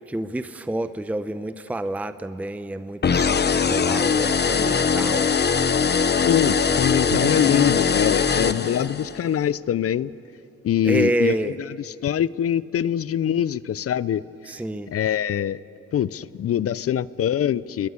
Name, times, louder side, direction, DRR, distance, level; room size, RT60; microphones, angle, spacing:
voice 1, 0.1-5.3 10.8-11.6 14.4-14.9, right 1 dB, 5° right, 11 dB, 0.7 m, -28 dB
sound 1, 3.0-9.2, left 5 dB, 35° left, 1.0 m, -21 dB
voice 2, 6.2-10.1 10.6-11.4 12.0-14.2 14.9-15.6 15.9-17.9, left 10 dB, 50° left, 19 dB, 0.6 m, -23 dB
Drum, 7.1-9.3, right 4 dB, 60° right, 3.0 m, -37 dB
28.5 x 21.0 x 8.4 m, 2.8 s
cardioid pair, 90°, 30 cm